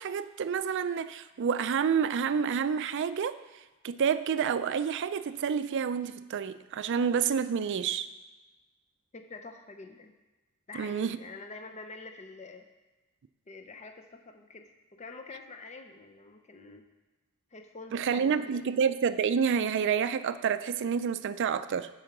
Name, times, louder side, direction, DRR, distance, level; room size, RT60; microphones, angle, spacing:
voice 1, 0.0-3.3 3.8-8.1 10.7-11.2 17.9-21.9, right 7 dB, 55° right, 13 dB, 0.4 m, -28 dB
voice 2, 9.1-10.1 10.7-12.6 13.5-16.8 17.5-18.6, left 3 dB, 30° left, 5 dB, 0.6 m, -46 dB
8.6 x 4.5 x 5.9 m, 1.2 s
head